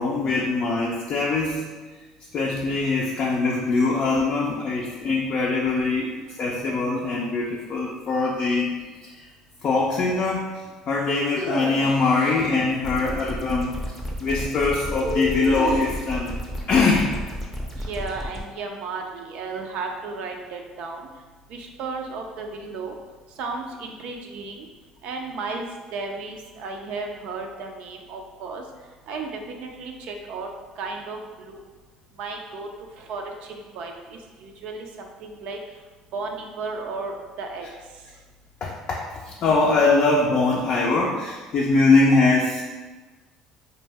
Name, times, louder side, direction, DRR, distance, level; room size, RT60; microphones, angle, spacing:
voice 1, 0.0-1.6 2.3-6.1 6.4-8.7 9.2-9.3 9.6-10.5 10.9-13.7 14.2-16.4 16.7-17.1 38.6-42.7, left 3 dB, 55° left, -3 dB, 0.4 m, -22 dB
sound 1, 11.1-12.4 15.0-16.2, left 1 dB, 80° right, 0.8 m, -30 dB
sound 2, 12.8-18.4, equal, 5° left, 0.6 m, -33 dB
voice 2, 17.9-21.0 21.5-22.9 23.4-24.7 25.0-25.7 25.9-28.6 29.1-30.5 30.8-31.6 32.2-32.7 33.1-33.2 33.7-34.9 35.2-35.6 36.1-37.7, right 4 dB, 65° right, 3 dB, 0.4 m, -34 dB
2.6 x 2.1 x 3.3 m, 1.3 s
hypercardioid pair, 70°, 2 cm